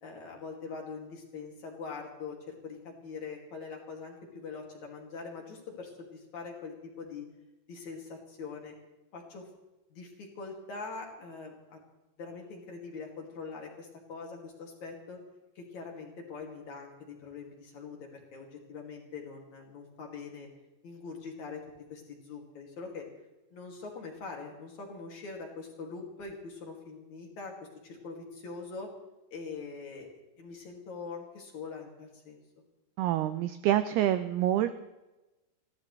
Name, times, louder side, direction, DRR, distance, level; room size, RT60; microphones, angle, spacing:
voice 1, 0.0-7.3 7.7-8.7 9.1-9.5 9.9-11.8 12.2-15.2 15.6-20.5 20.8-21.6 21.9-23.1 23.5-27.5 27.8-28.9 29.3-30.1 30.4-32.4, left 4 dB, 45° left, 0 dB, 3.2 m, -43 dB
voice 2, 33.0-34.7, right 12 dB, 90° right, 11 dB, 2.2 m, -27 dB
29.0 x 13.0 x 3.2 m, 1.0 s
omnidirectional pair, 5.3 m